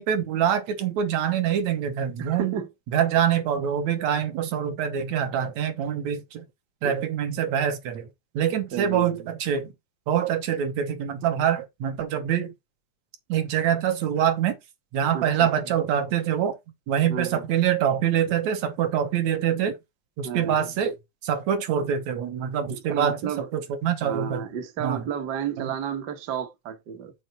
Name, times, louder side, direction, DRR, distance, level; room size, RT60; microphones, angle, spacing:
voice 1, 0.0-2.5 2.9-6.5 6.8-8.1 8.4-9.7 10.1-12.5 13.3-14.6 14.9-16.6 16.9-19.8 20.2-21.0 21.2-24.4 24.8-25.0 25.6-25.7, right 9 dB, 70° right, 2.3 m, -25 dB
voice 2, 2.2-2.7 6.8-7.0 8.7-9.3 15.1-15.5 17.1-17.4 20.2-20.6 22.9-23.5 24.0-27.1, right 8 dB, 55° right, 1.2 m, -32 dB
6.4 x 4.4 x 5.4 m
omnidirectional pair, 3.5 m